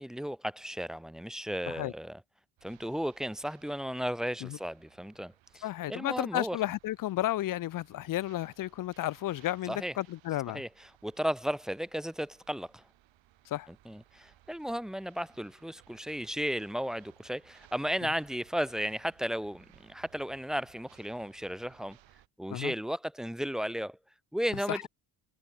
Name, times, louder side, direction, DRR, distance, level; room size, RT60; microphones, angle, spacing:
voice 1, 0.0-2.2 2.6-6.6 9.6-10.0 10.5-12.8 13.7-22.0 22.4-24.0 24.3-24.9, equal, ahead, 0.6 m, -35 dB
sound 1, 2.6-22.3, right 14 dB, 80° right, 6.7 m, -63 dB
voice 2, 5.6-10.6 13.5-13.7 22.5-22.7 24.7-24.9, left 14 dB, 45° left, 0.5 m, -33 dB
cardioid pair, 180°, 45 cm